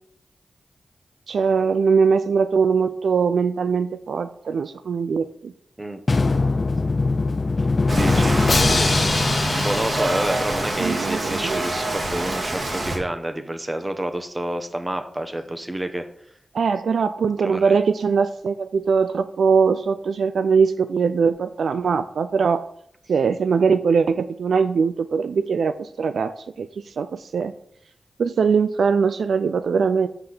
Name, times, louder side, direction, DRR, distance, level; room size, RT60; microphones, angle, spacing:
voice 1, 1.3-5.5 10.8-11.6 16.5-22.6 23.1-26.7 27.0-27.5 28.2-30.1, right 5 dB, 85° right, 11 dB, 0.3 m, -21 dB
Drum, 6.1-10.9, left 3 dB, 50° left, 0.4 m, -22 dB
voice 2, 7.9-8.4 9.5-16.0 17.4-17.7, right 1 dB, 25° right, 7 dB, 1.2 m, -28 dB
Rain, 7.9-13.0, right 1 dB, 60° right, 2.4 m, -26 dB
6.0 x 5.5 x 6.6 m, 0.69 s
cardioid pair, 45°, 0 cm